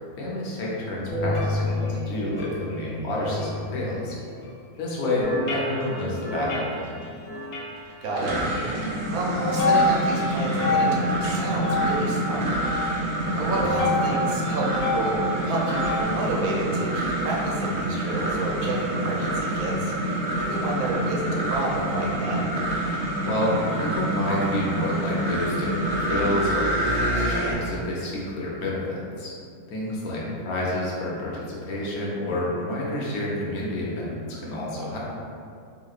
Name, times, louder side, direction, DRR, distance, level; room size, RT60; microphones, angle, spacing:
voice 1, 0.1-4.1 4.8-7.0 13.7-13.8 23.2-29.3 29.7-35.0, left 1 dB, 80° left, -5 dB, 1.2 m, -29 dB
sound 1, 0.7-4.6 5.2-7.8 8.3-8.6 9.3-16.0, left 1 dB, 50° left, 0.9 m, -28 dB
sound 2, 7.9-27.5, right 1 dB, 60° right, 0.5 m, -27 dB
voice 2, 8.0-8.4 9.1-12.5 13.3-22.5, right 2 dB, 75° right, -3 dB, 1.1 m, -30 dB
sound 3, 8.5-12.4, left 2 dB, 15° left, 0.8 m, -40 dB
3.5 x 2.9 x 2.4 m, 2.3 s
omnidirectional pair, 1.6 m